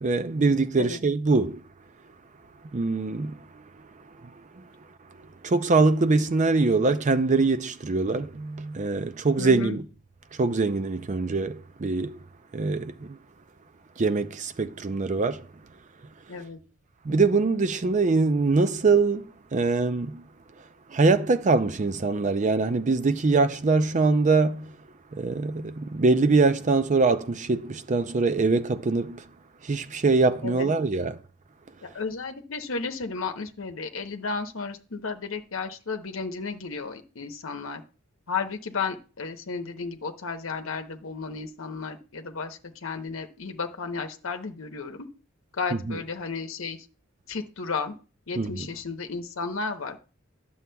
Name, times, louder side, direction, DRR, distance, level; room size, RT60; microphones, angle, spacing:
voice 1, 0.0-1.6 2.7-3.4 5.4-9.8 10.4-12.2 12.5-13.2 14.0-15.5 17.0-20.2 20.9-24.7 25.1-29.2 29.6-31.2 48.4-48.7, right 3 dB, 35° right, 0.5 m, -23 dB
voice 2, 9.4-9.8 16.3-16.6 30.4-30.7 31.8-37.8 38.3-45.1 45.5-46.8 47.3-47.9 48.3-50.0, left 4 dB, 80° left, 0.9 m, -33 dB
11.0 x 7.0 x 2.2 m
head